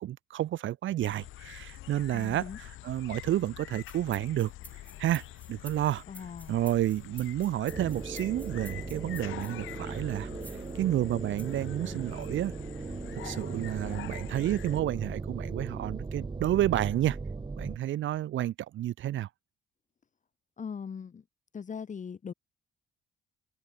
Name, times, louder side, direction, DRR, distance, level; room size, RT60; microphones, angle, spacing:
voice 1, 0.0-5.2 5.5-6.0 6.5-12.5 13.1-17.2 17.6-19.3, right 13 dB, 75° right, 1.1 m, -30 dB
sound 1, 1.0-14.8, left 15 dB, 85° left, 1.3 m, -46 dB
voice 2, 2.1-2.6 6.1-6.6 20.6-21.2 21.5-22.3, left 6 dB, 40° left, 1.5 m, -40 dB
sound 2, 3.7-9.6 10.4-10.7 11.4-11.6 12.2-12.3, left 1 dB, 5° left, 3.1 m, -51 dB
sound 3, 7.7-17.8, right 4 dB, 25° right, 1.6 m, -38 dB
cardioid pair, 90°, 20 cm